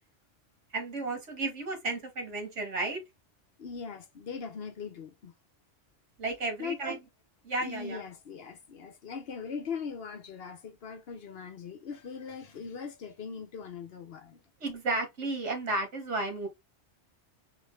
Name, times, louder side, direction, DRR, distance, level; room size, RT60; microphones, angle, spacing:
voice 1, 0.7-3.0 6.2-7.0 7.4-8.0 14.6-16.5, right 2 dB, 75° right, 1.7 m, -33 dB
voice 2, 3.6-5.3 6.6-6.8 7.6-14.4, left 6 dB, 60° left, 0.9 m, -40 dB
4.2 x 2.5 x 3.2 m
omnidirectional pair, 1.2 m